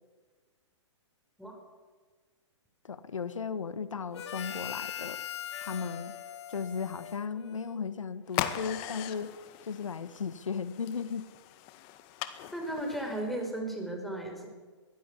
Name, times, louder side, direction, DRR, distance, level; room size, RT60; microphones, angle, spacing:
voice 1, 2.8-5.2 5.6-6.1 6.5-9.3 9.6-11.3, left 6 dB, 85° left, 14 dB, 1.3 m, -36 dB
Harmonica, 4.1-7.9, left 10 dB, 60° left, 1.6 m, -41 dB
sound 1, 8.3-13.5, left 12 dB, 35° left, 1.8 m, -39 dB
voice 2, 12.5-14.5, right 1 dB, ahead, 2 dB, 5.0 m, -35 dB
22.5 x 16.0 x 8.3 m, 1.4 s
hypercardioid pair, 130°, 16 cm